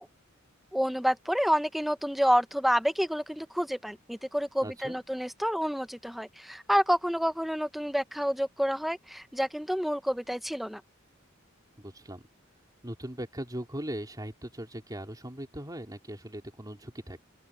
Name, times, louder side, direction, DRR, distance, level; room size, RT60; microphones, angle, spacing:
voice 1, 0.7-10.8, equal, ahead, 0.9 m, -28 dB
voice 2, 4.6-4.9 11.8-12.2 12.8-17.2, right 1 dB, 20° right, 3.4 m, -39 dB
open air
head